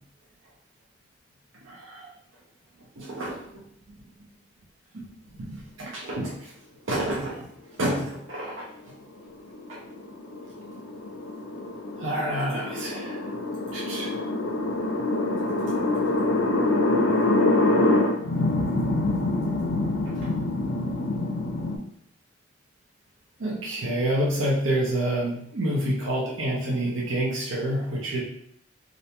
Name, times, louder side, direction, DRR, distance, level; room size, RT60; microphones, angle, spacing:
voice 1, 1.7-2.1 3.0-3.6 4.9-5.1 5.3-6.5 6.9-7.5 7.8-8.9 9.7-9.8 12.0-13.3 13.7-14.2 20.1-20.3 23.4-28.2, right 1 dB, 85° right, -3 dB, 0.6 m, -28 dB
sound 1, 9.2-21.8, left 2 dB, 80° left, 0.4 m, -25 dB
2.5 x 2.1 x 2.9 m, 0.69 s
head